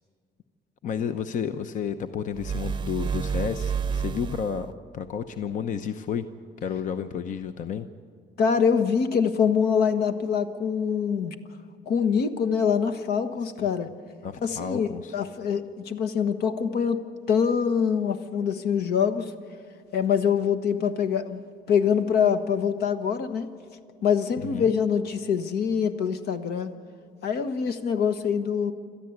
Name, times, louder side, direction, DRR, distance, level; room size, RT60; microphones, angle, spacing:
voice 1, 0.8-6.3 6.6-7.9 13.6-13.7 14.2-15.1 24.4-24.7, left 7 dB, 50° left, 9 dB, 0.8 m, -31 dB
sound 1, 2.3-4.7, right 6 dB, 30° right, 0.6 m, -30 dB
voice 2, 8.4-11.3 11.9-13.9 14.4-19.3 19.9-23.5 24.0-26.7 27.2-28.7, left 7 dB, 75° left, 9 dB, 1.3 m, -24 dB
27.0 x 13.0 x 8.0 m, 2.2 s
cardioid pair, 115°, 16 cm